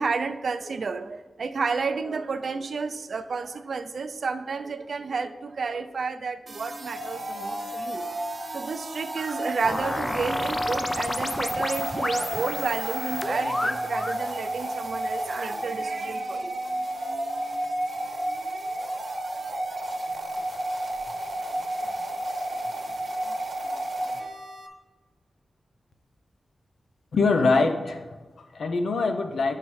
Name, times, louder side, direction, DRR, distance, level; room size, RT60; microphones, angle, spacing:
voice 1, 0.0-8.0 8.5-16.5, right 4 dB, 60° right, 10 dB, 0.3 m, -31 dB
sound 1, 6.5-24.7, right 1 dB, 40° right, 0.9 m, -32 dB
sound 2, 9.6-14.2, left 1 dB, 20° left, 0.3 m, -31 dB
voice 2, 27.1-29.6, left 3 dB, 80° left, 7 dB, 0.5 m, -24 dB
9.6 x 5.6 x 3.1 m, 1.2 s
wide cardioid pair, 180°, 0 cm